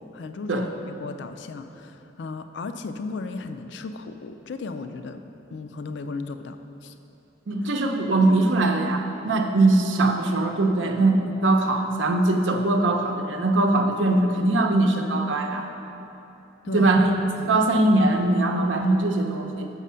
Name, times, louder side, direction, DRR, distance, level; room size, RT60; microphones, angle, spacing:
voice 1, 0.0-5.2 5.5-6.9 16.6-16.9 17.3-17.6, left 3 dB, 65° left, 8 dB, 0.4 m, -35 dB
voice 2, 7.5-15.7 16.7-17.1 17.5-19.7, right 2 dB, 85° right, 3 dB, 0.7 m, -21 dB
7.3 x 6.2 x 5.6 m, 3.0 s
head